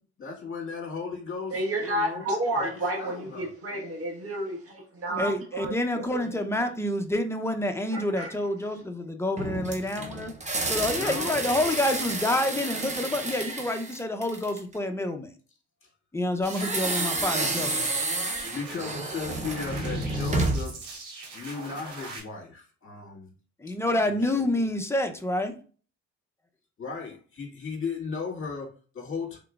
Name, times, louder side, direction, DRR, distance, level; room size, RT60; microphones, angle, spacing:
voice 1, 0.2-2.3 2.6-3.5 10.9-11.5 15.8-15.9 18.4-20.8 21.3-23.3 23.7-23.8 24.1-24.7 26.8-29.4, left 5 dB, 45° left, 1.9 m, -36 dB
voice 2, 1.5-6.1 7.9-8.3, right 1 dB, 50° right, 1.4 m, -31 dB
voice 3, 5.2-10.3 10.7-15.3 16.1-17.7 23.6-25.5, left 1 dB, 10° left, 0.7 m, -28 dB
sound 1, 9.4-14.7 16.4-20.8, right 2 dB, 25° right, 0.9 m, -30 dB
sound 2, 16.4-22.2, right 3 dB, 75° right, 1.6 m, -42 dB
3.8 x 3.6 x 2.4 m
cardioid pair, 90°, 30 cm